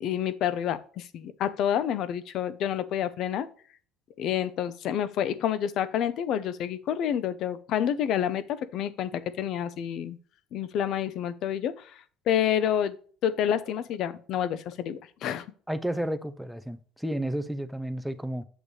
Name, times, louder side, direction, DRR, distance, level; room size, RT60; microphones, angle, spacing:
voice 1, 0.0-3.5 4.2-10.2 10.5-12.9 13.2-15.5, left 9 dB, 50° left, 0.7 m, -28 dB
voice 2, 15.7-18.5, right 1 dB, ahead, 0.5 m, -32 dB
8.9 x 6.7 x 3.3 m
cardioid pair, 165°, 0 cm